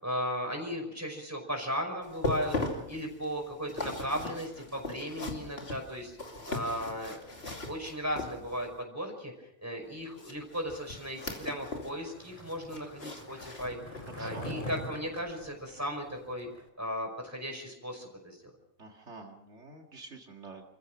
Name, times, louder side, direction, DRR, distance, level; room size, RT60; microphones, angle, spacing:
voice 1, 0.0-2.6 2.9-6.2 6.5-7.2 7.7-16.5 16.8-18.4, equal, 15° right, 2 dB, 5.5 m, -36 dB
sound 1, 2.0-8.8 10.2-12.0 12.3-14.2 14.7-14.8 15.3-15.4, left 2 dB, 55° left, 2.9 m, -39 dB
Skateboard, 11.2-16.7, left 1 dB, 30° left, 2.4 m, -44 dB
voice 2, 14.1-14.5 18.8-20.6, right 3 dB, 75° right, 1 dB, 2.4 m, -48 dB
28.5 x 15.0 x 6.1 m, 0.82 s
omnidirectional pair, 1.2 m